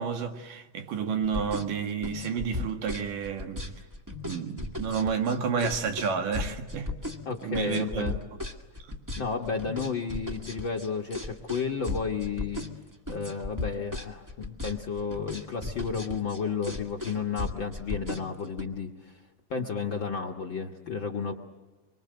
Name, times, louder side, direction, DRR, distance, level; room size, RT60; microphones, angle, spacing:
voice 1, 0.0-3.7 4.2-6.9 7.4-8.1 8.9-9.0, right 6 dB, 75° right, 3.5 m, -30 dB
sound 1, 1.2-18.6, left 2 dB, 10° right, 1.0 m, -36 dB
voice 2, 7.2-8.1 9.2-12.7 13.1-19.1 19.5-21.4, left 5 dB, 50° left, 1.4 m, -32 dB
25.0 x 24.5 x 7.8 m
omnidirectional pair, 3.9 m